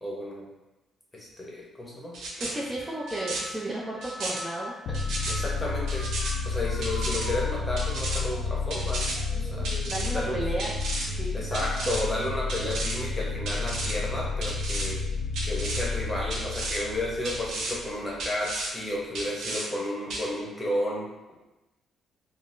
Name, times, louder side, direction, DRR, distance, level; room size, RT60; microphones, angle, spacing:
voice 1, 0.0-0.5 1.1-2.2 5.3-6.1 6.4-9.1 9.4-9.8 10.1-10.4 11.3-15.0 15.4-21.1, left 1 dB, 15° left, -4 dB, 0.9 m, -32 dB
sound 1, 2.1-2.5 3.1-3.4 4.0-4.4 4.9-5.3 5.9-6.3 6.8-7.3 7.8-8.2 8.7-9.2 9.6-10.1 10.6-11.1 11.5-12.0 12.5-13.0 13.5-13.9 14.4-14.9 15.3-15.8 16.3-16.8 17.2-17.7 18.2-18.7 19.1-19.6 20.1-20.3, right 2 dB, 75° right, 0.6 m, -33 dB
voice 2, 2.4-5.0 9.3-10.7 11.1-11.9, right 1 dB, 20° right, -5 dB, 0.5 m, -34 dB
sound 2, 2.5-12.1 12.6-13.2 14.1-14.5, left 1 dB, 40° left, 0.6 m, -45 dB
sound 3, 4.9-18.3, left 4 dB, 80° left, 0.3 m, -31 dB
3.9 x 2.0 x 2.5 m, 1.0 s
cardioid pair, 90°, 0 cm